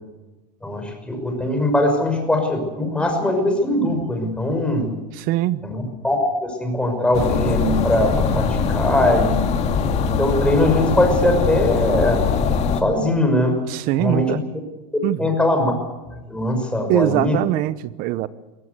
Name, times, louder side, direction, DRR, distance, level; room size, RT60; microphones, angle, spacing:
voice 1, 0.6-4.9 5.6-9.5 10.1-12.2 12.8-13.6 14.0-14.4 15.2-15.7 16.3-17.4, left 1 dB, 5° left, 4 dB, 5.8 m, -21 dB
voice 2, 5.1-5.6 13.7-14.4 15.0-15.3 16.9-18.3, right 15 dB, 45° right, 17 dB, 0.9 m, -22 dB
sound 1, 7.1-12.8, left 5 dB, 30° left, 2.5 m, -21 dB
23.5 x 17.5 x 8.2 m, 1.1 s
supercardioid pair, 140°, 21 cm